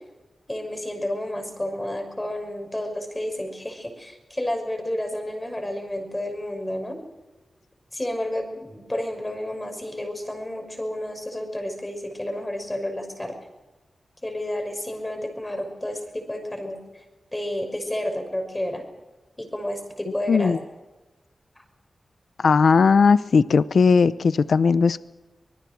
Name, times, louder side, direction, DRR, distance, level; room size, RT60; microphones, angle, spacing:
voice 1, 0.5-7.0 7.9-13.4 14.2-17.0 17.3-18.8 19.4-20.6 21.6-21.7, left 1 dB, 15° left, 4 dB, 6.1 m, -31 dB
voice 2, 20.3-20.6 22.4-25.0, left 5 dB, 75° left, 15 dB, 0.7 m, -18 dB
25.5 x 20.5 x 6.3 m, 1.1 s
wide cardioid pair, 85°, 0 cm